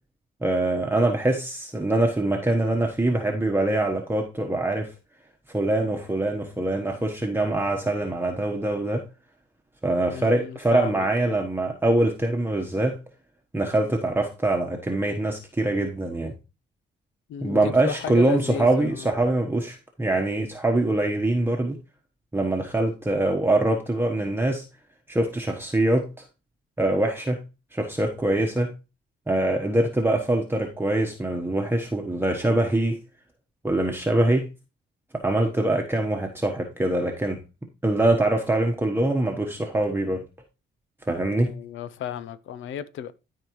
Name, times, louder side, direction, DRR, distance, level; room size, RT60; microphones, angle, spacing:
voice 1, 0.4-4.9 5.5-9.0 9.8-13.0 13.5-16.3 17.4-21.8 22.3-24.6 25.1-26.2 26.8-27.4 27.7-28.7 29.3-33.0 33.6-34.5 35.1-37.4 37.8-40.2 41.1-41.5, right 2 dB, 10° right, 1.2 m, -24 dB
voice 2, 10.1-11.4 17.3-19.1 41.4-43.1, left 9 dB, 80° left, 0.7 m, -34 dB
13.0 x 4.6 x 3.1 m
cardioid pair, 90°, 20 cm